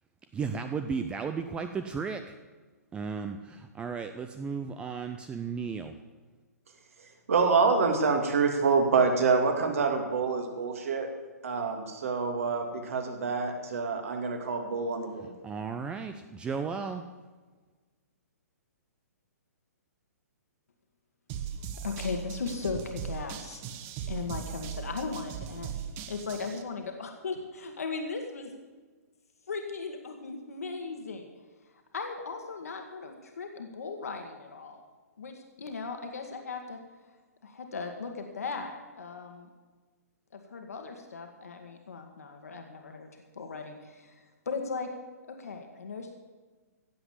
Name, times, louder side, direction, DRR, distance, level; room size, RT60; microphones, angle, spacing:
voice 1, 0.3-2.2 2.9-5.9 15.4-17.0, right 5 dB, 10° right, 8 dB, 0.5 m, -34 dB
voice 2, 7.3-11.1 11.4-15.3, right 4 dB, 55° right, 4 dB, 2.4 m, -26 dB
sound 1, 21.3-26.6, right 8 dB, 25° right, 0.9 m, -39 dB
voice 3, 21.8-23.6 24.1-25.8 26.1-28.5 29.5-31.3 31.9-34.8 35.2-36.8 37.4-39.5 40.3-43.1 43.3-44.9 45.3-46.1, left 4 dB, 65° left, 4 dB, 1.8 m, -37 dB
16.0 x 7.9 x 7.3 m, 1.4 s
figure-of-eight pair, 120°, 9 cm